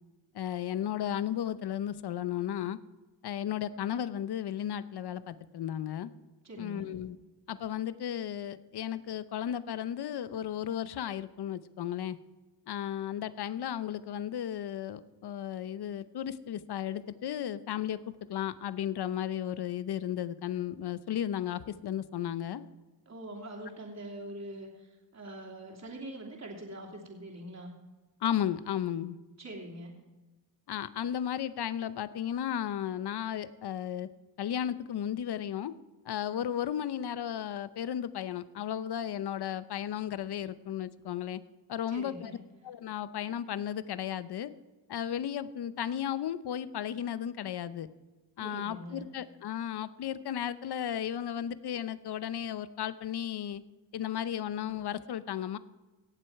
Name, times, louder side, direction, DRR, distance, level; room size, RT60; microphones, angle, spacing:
voice 1, 0.3-2.8 3.2-6.1 6.6-7.2 7.5-12.2 12.7-18.0 18.3-22.6 28.2-29.2 30.7-34.1 34.4-35.7 36.0-41.4 41.7-42.3 42.6-44.5 44.9-47.9 48.4-53.6 53.9-55.6, left 10 dB, 60° left, 15 dB, 0.7 m, -34 dB
voice 2, 6.4-6.9 23.1-27.7 29.4-29.9 41.9-42.4 48.4-49.0, right 1 dB, 35° right, 0 dB, 2.9 m, -43 dB
17.5 x 7.8 x 4.6 m, 1.2 s
cardioid pair, 80°, 44 cm